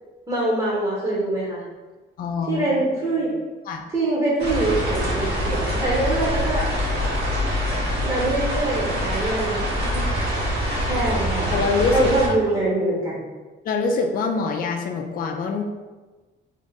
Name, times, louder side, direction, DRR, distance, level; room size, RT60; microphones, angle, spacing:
voice 1, 0.3-1.6 2.5-3.3 3.9-6.7 8.0-10.0 10.8-11.5 11.9-13.2, right 2 dB, 20° right, -6 dB, 0.9 m, -24 dB
voice 2, 2.2-2.7 3.7-3.8 11.5-12.1 13.6-15.6, left 4 dB, 45° left, 3 dB, 0.4 m, -24 dB
sound 1, 4.4-12.3, equal, 55° right, 1.0 m, -24 dB
2.6 x 2.4 x 3.9 m, 1.3 s
cardioid pair, 90°, 20 cm